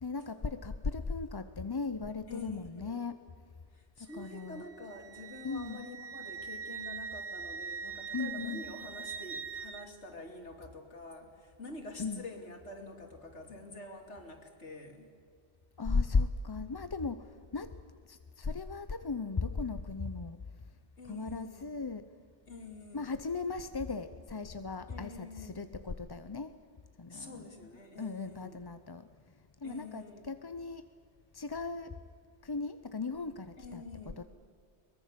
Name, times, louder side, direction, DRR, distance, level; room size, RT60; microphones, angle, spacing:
voice 1, 0.0-3.2 4.0-4.6 5.4-5.8 8.1-8.7 12.0-12.2 15.8-17.8 18.1-20.4 21.1-22.1 22.9-26.5 27.0-27.5 28.0-29.1 29.6-30.9 31.3-32.0 32.4-34.2, left 4 dB, 30° left, 11 dB, 0.5 m, -36 dB
voice 2, 2.3-3.1 3.7-15.1 21.0-21.7 22.5-23.1 24.9-25.8 27.1-28.6 29.6-30.3 33.6-34.2, left 2 dB, 85° left, 3 dB, 3.2 m, -47 dB
Wind instrument woodwind instrument, 4.1-9.9, right 6 dB, 80° right, 1.3 m, -42 dB
23.5 x 21.0 x 7.5 m, 2.2 s
omnidirectional pair, 1.2 m